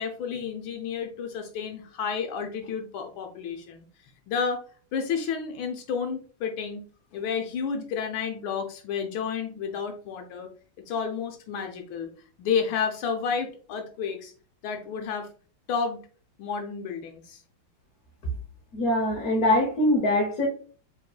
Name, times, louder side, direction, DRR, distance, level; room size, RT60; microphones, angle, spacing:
voice 1, 0.0-3.9 4.3-4.6 4.9-6.8 7.1-10.5 10.9-12.1 12.4-14.3 14.6-15.3 15.7-16.0 16.4-17.4, left 6 dB, 80° left, 4 dB, 1.4 m, -31 dB
voice 2, 18.7-20.5, left 1 dB, 55° left, 0 dB, 1.2 m, -23 dB
4.7 x 3.6 x 2.2 m, 0.41 s
omnidirectional pair, 2.2 m